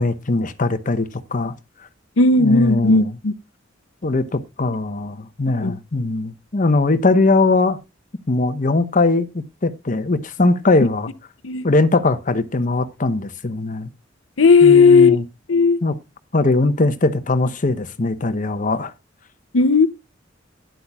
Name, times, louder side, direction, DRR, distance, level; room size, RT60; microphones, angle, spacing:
voice 1, 0.0-1.5 2.4-3.1 4.0-7.8 8.3-11.1 11.6-13.9 14.6-15.2 15.8-15.9 16.3-18.9, left 3 dB, 45° left, 0.9 m, -20 dB
voice 2, 2.2-3.3 5.6-5.7 11.4-11.7 14.4-15.2 15.5-15.8 19.5-19.9, left 4 dB, 90° left, 0.7 m, -14 dB
12.5 x 10.5 x 2.3 m
head